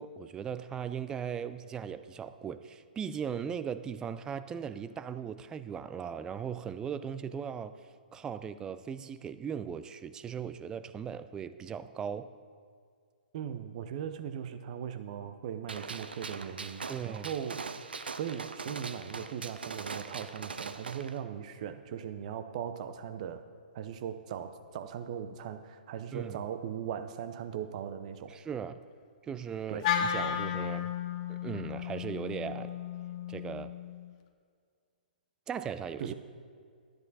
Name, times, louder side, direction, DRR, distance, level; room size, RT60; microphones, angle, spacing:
voice 1, 0.0-12.3 16.9-17.3 26.1-26.4 28.3-28.8 29.2-30.9 31.3-32.7 33.3-33.7 35.5-36.1, right 7 dB, 15° right, 13 dB, 0.3 m, -38 dB
voice 2, 13.3-17.7 18.2-23.4 23.7-28.4 29.7-29.9 36.0-36.1, right 8 dB, 45° right, 10 dB, 0.7 m, -39 dB
Gunshot gunfire, 15.7-21.1, right 5 dB, 85° right, 0.6 m, -41 dB
Wind instrument woodwind instrument, 29.8-34.1, left 9 dB, 45° left, 0.8 m, -34 dB
10.5 x 10.5 x 4.1 m, 2.1 s
hypercardioid pair, 135°, 5 cm